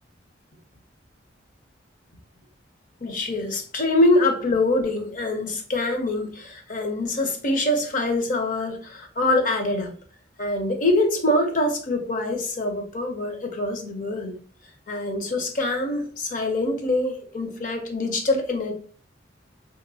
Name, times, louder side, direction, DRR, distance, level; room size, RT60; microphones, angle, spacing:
voice 1, 3.0-9.9 10.4-14.4 14.9-18.7, left 2 dB, 45° left, 0.6 m, -24 dB
2.8 x 2.7 x 2.6 m
head